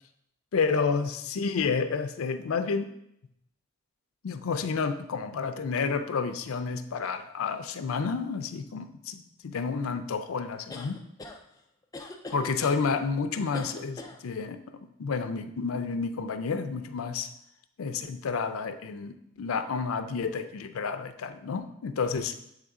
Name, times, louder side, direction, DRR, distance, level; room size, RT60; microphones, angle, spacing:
voice 1, 0.5-2.9 4.2-11.0 12.3-17.3 17.8-22.3, left 5 dB, 90° left, 10 dB, 0.4 m, -30 dB
sound 1, 10.7-11.4 11.9-12.8 13.5-14.2, left 2 dB, 15° left, 0.4 m, -41 dB
8.2 x 3.2 x 3.6 m, 0.79 s
head